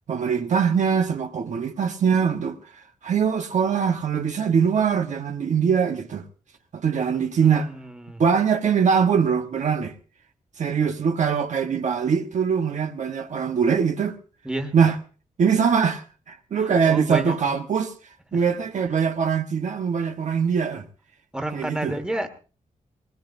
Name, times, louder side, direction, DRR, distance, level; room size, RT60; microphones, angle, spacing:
voice 1, 0.1-2.6 3.0-6.2 6.7-7.7 8.2-9.9 10.6-14.2 14.7-14.9 15.4-17.9 18.3-20.8 21.5-21.9, right 6 dB, 60° right, 1.2 m, -22 dB
voice 2, 7.1-8.2 14.4-14.7 16.5-17.3 21.3-22.3, right 1 dB, 5° right, 1.7 m, -31 dB
21.0 x 20.0 x 2.6 m
wide cardioid pair, 160°, 14 cm